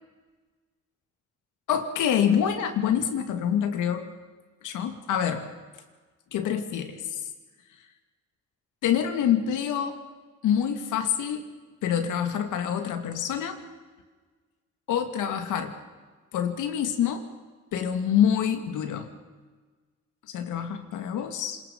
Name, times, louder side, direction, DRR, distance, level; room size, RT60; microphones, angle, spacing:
voice 1, 1.7-4.1 4.6-5.5 6.3-7.2 8.8-10.0 10.4-11.4 11.8-13.6 14.9-15.7 16.3-17.2 17.7-19.1 20.3-21.6, left 9 dB, 85° left, 7 dB, 2.6 m, -26 dB
26.0 x 22.0 x 5.6 m, 1.4 s
cardioid pair, 90°, 30 cm